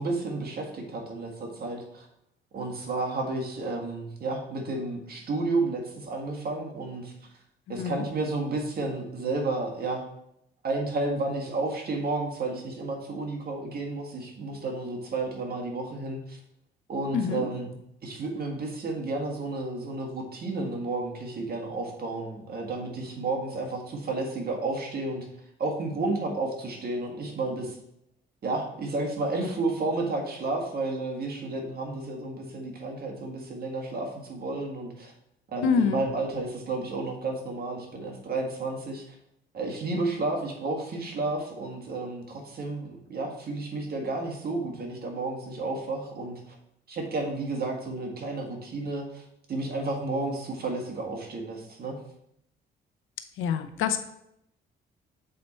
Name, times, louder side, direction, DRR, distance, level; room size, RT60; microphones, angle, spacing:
voice 1, 0.0-2.1 2.5-7.1 7.7-10.0 10.6-16.4 16.9-17.8 18.0-25.3 25.6-27.8 28.4-35.1 35.5-39.2 39.5-46.6 46.9-49.2 49.5-52.0, right 2 dB, 50° right, 1 dB, 1.8 m, -31 dB
voice 2, 7.7-8.0 17.1-17.4 35.6-36.0 53.4-54.0, left 6 dB, 85° left, 8 dB, 0.7 m, -26 dB
7.5 x 4.4 x 4.3 m, 0.76 s
cardioid pair, 90°, 20 cm